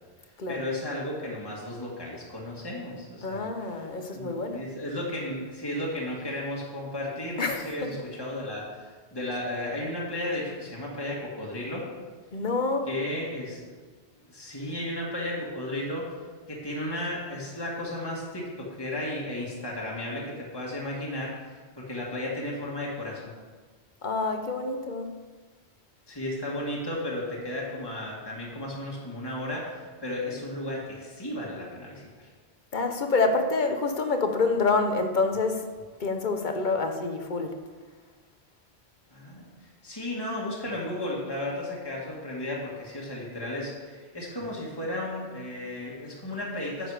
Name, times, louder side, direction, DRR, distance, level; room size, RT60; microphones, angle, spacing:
voice 1, 0.5-11.9 12.9-13.8 14.3-16.1 16.5-23.2 26.1-32.2 39.1-39.5 39.8-46.9, left 1 dB, 20° left, -4 dB, 1.9 m, -34 dB
voice 2, 3.2-4.6 7.4-8.1 12.3-12.9 24.0-25.1 32.7-35.6 36.0-37.5, left 3 dB, 50° left, 6 dB, 1.0 m, -27 dB
9.9 x 7.1 x 4.9 m, 1.4 s
omnidirectional pair, 1.1 m